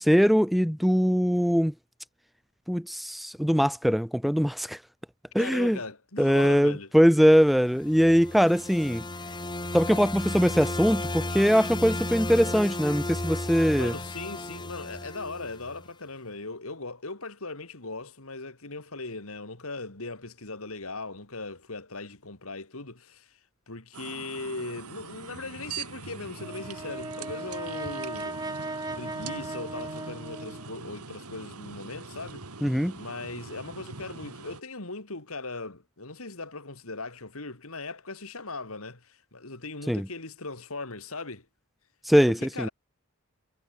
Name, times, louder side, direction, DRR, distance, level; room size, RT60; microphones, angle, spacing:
voice 1, 0.0-1.7 2.7-4.8 5.3-5.8 6.2-9.1 9.7-13.9 32.6-32.9 39.9-40.1 42.1-42.7, equal, ahead, 0.5 m, -22 dB
voice 2, 5.4-6.9 13.7-23.4 23.7-28.4 29.0-32.5 32.9-41.5 42.3-42.7, left 3 dB, 70° left, 2.9 m, -39 dB
sound 1, 7.7-15.9, left 1 dB, 20° left, 4.2 m, -34 dB
sound 2, 23.9-34.6, right 4 dB, 80° right, 2.2 m, -42 dB
Brass instrument, 26.4-30.8, right 2 dB, 15° right, 1.7 m, -37 dB
head